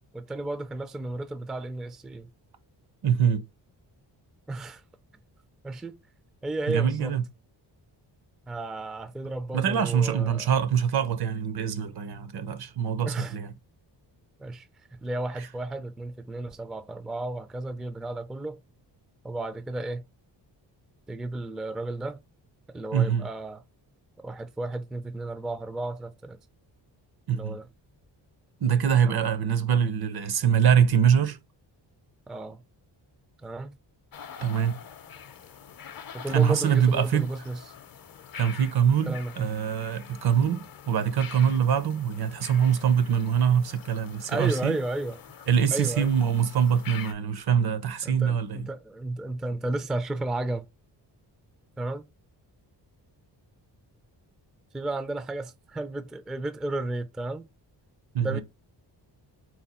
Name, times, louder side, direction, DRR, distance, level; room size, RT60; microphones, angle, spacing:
voice 1, 0.1-2.3 4.5-4.8 5.6-6.0 6.4-7.2 8.5-10.6 13.1-13.4 14.4-18.6 19.2-20.0 21.1-22.2 22.7-23.6 24.2-26.4 27.3-27.7 29.0-29.3 32.3-32.6 33.4-33.8 36.1-37.7 39.1-39.5 44.3-45.2 45.7-46.2 48.0-50.7 51.8-52.1 54.7-57.5 58.2-58.4, right 2 dB, ahead, 0.3 m, -33 dB
voice 2, 3.0-3.4 6.7-7.2 9.5-13.5 22.9-23.3 27.3-27.6 28.6-31.4 34.4-34.8 36.3-37.3 38.4-44.7 45.5-48.7 58.1-58.4, right 8 dB, 60° right, 0.7 m, -24 dB
sound 1, 34.1-47.1, left 8 dB, 50° left, 0.6 m, -45 dB
4.2 x 2.2 x 4.2 m
cardioid pair, 90°, 44 cm